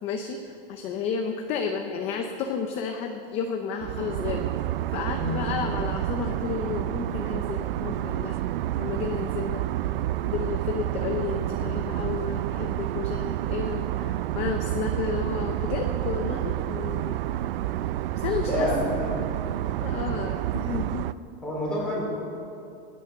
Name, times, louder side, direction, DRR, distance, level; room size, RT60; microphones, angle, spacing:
voice 1, 0.0-4.5 4.9-8.3 8.8-9.9 10.2-17.2 18.2-18.9 19.8-21.1, left 6 dB, 20° left, 4 dB, 0.6 m, -32 dB
sound 1, 3.8-21.1, right 14 dB, 65° right, 0.5 m, -29 dB
voice 2, 18.5-19.1 21.4-22.2, left 1 dB, 5° left, -6 dB, 3.9 m, -28 dB
21.0 x 9.4 x 6.8 m, 2.6 s
supercardioid pair, 175°, 31 cm